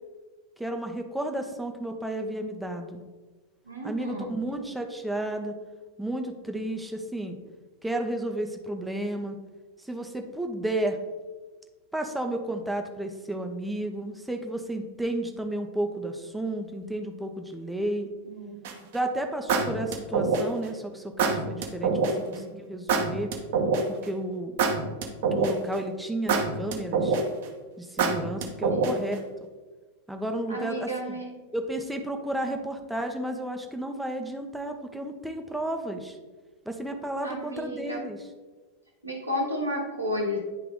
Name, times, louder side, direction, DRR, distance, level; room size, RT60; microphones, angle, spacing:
voice 1, 0.6-3.0 3.8-5.5 6.0-7.4 7.8-9.4 9.8-11.0 11.9-18.1 18.9-23.3 23.9-24.6 25.3-27.2 27.8-29.2 30.1-31.2 31.5-36.2 36.7-38.2, right 1 dB, 5° right, 4 dB, 0.7 m, -32 dB
voice 2, 3.6-4.3 18.2-18.9 21.9-22.5 28.7-29.2 30.5-31.3 32.4-32.6 37.2-38.0 39.0-40.4, equal, 85° right, -3 dB, 1.3 m, -33 dB
sound 1, 18.6-18.9 19.5-20.6 21.2-22.1 22.9-24.0 24.6-25.7 26.3-27.4 28.0-29.1, right 4 dB, 50° right, 1.0 m, -25 dB
10.0 x 3.4 x 3.7 m, 1.3 s
figure-of-eight pair, 90°, 0 cm